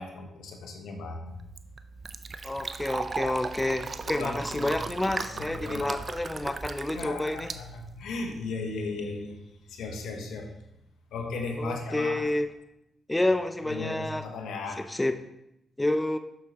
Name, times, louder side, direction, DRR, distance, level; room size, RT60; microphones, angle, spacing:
voice 1, 0.0-1.4 3.2-3.4 4.1-4.7 5.0-6.0 6.3-6.6 6.9-9.4 9.7-10.6 11.1-12.3 13.7-14.9, left 3 dB, 80° left, 4 dB, 0.9 m, -36 dB
Fill (with liquid), 1.3-8.4, right 4 dB, 50° right, 0.5 m, -37 dB
voice 2, 2.4-7.5 11.6-12.5 13.1-14.2 14.9-15.1 15.8-16.2, left 1 dB, 15° left, 8 dB, 0.5 m, -29 dB
6.9 x 6.4 x 2.9 m, 0.83 s
supercardioid pair, 45°, 0 cm